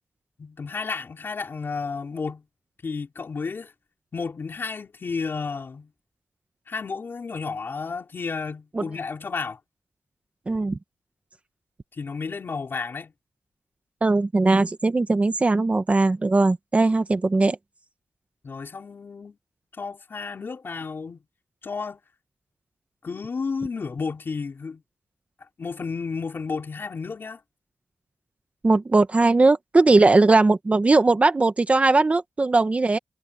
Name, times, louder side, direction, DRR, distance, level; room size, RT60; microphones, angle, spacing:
voice 1, 0.4-2.4 2.8-3.7 4.1-5.9 6.7-9.6 11.9-13.1 18.4-19.4 19.8-21.2 21.6-22.0 23.0-24.8 25.6-27.4, left 4 dB, 45° left, 4.5 m, -32 dB
voice 2, 10.5-10.8 14.0-17.6 28.6-33.0, right 3 dB, 25° right, 0.9 m, -19 dB
wide cardioid pair, 170°, 5 cm